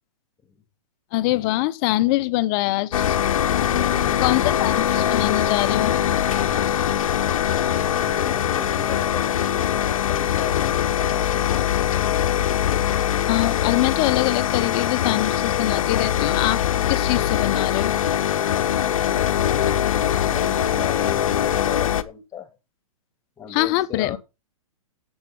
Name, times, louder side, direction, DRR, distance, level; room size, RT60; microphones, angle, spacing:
voice 1, 1.1-3.2 4.2-5.9 13.3-16.6 16.9-18.0 23.5-24.2, left 18 dB, 40° left, 0.9 m, -23 dB
sound 1, 2.9-22.0, left 10 dB, 70° left, 1.0 m, -22 dB
sound 2, 4.8-7.2, right 5 dB, 55° right, 5.6 m, -54 dB
voice 2, 7.9-11.7 18.8-22.6 23.4-24.2, left 6 dB, 15° left, 2.3 m, -37 dB
10.5 x 8.1 x 5.4 m
hypercardioid pair, 125°, 18 cm